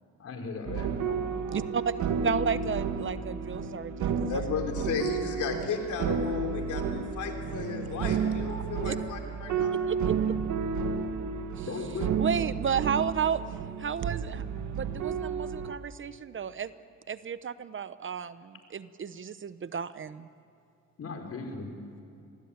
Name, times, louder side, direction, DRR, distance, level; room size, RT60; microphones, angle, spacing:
voice 1, 0.2-1.3 11.7-12.2 21.0-21.7, left 4 dB, 50° left, 3 dB, 5.2 m, -37 dB
sound 1, 0.7-15.8, right 6 dB, 75° right, 1.9 m, -31 dB
voice 2, 1.5-1.9 2.2-4.4 8.8-9.0 9.9-10.1 11.6-11.7 12.2-13.4 13.8-14.4 14.7-16.7 17.1-20.3, right 7 dB, 40° right, 14 dB, 0.9 m, -32 dB
voice 3, 4.3-9.8, left 6 dB, 75° left, 4 dB, 3.5 m, -34 dB
26.5 x 20.5 x 8.8 m, 2.6 s
cardioid pair, 90°, 30 cm